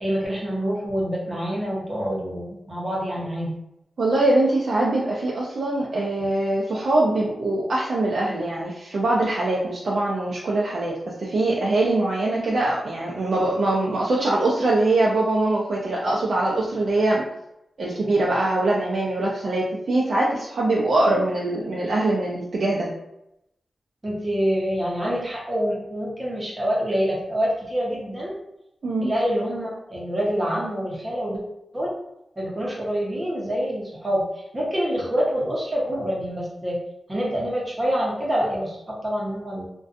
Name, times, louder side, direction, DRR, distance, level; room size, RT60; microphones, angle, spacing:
voice 1, 0.0-3.5 15.8-15.9 24.0-28.4 29.0-31.4 31.7-31.9 32.4-36.8 37.1-39.6, equal, 25° right, -5 dB, 0.7 m, -26 dB
voice 2, 4.0-17.2 17.8-22.9 28.8-29.1, right 2 dB, 70° right, -5 dB, 0.4 m, -23 dB
2.5 x 2.2 x 2.5 m, 0.84 s
cardioid pair, 75°, 0 cm